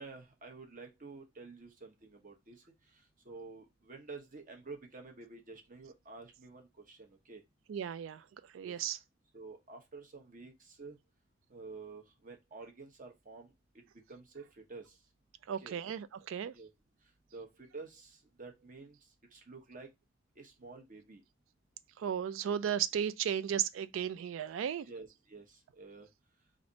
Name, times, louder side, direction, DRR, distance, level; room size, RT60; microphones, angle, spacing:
voice 1, 0.0-2.6 3.2-7.4 8.6-8.7 9.3-11.0 11.5-15.0 15.6-15.8 16.5-16.7 17.3-19.0 19.3-19.9 20.4-21.2 24.8-26.1, right 3 dB, 45° right, 0.9 m, -50 dB
voice 2, 7.7-8.2 8.5-9.0 15.5-16.5 22.0-24.9, right 9 dB, 80° right, 0.3 m, -35 dB
3.3 x 2.5 x 4.0 m
head